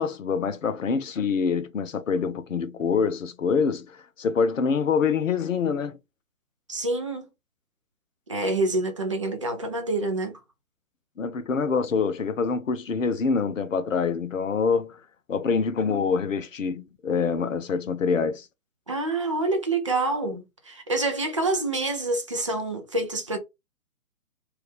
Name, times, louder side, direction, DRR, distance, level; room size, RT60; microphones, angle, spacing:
voice 1, 0.0-6.0 11.2-15.0 15.3-18.5, left 5 dB, 60° left, 0.7 m, -25 dB
voice 2, 6.7-7.3 8.3-10.4 18.9-23.4, right 2 dB, 25° right, 0.5 m, -27 dB
3.3 x 2.5 x 3.3 m
figure-of-eight pair, 130°, 44 cm